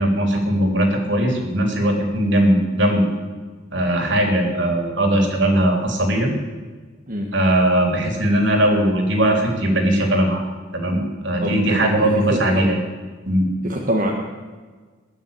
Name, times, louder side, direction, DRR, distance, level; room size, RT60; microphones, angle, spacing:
voice 1, 0.0-3.1 3.7-6.3 7.3-10.4 10.7-12.8 13.3-13.5, right 1 dB, 60° right, 2 dB, 3.5 m, -19 dB
voice 2, 11.4-12.7 13.6-14.1, equal, 40° right, -1 dB, 1.6 m, -24 dB
21.0 x 7.2 x 9.1 m, 1.4 s
head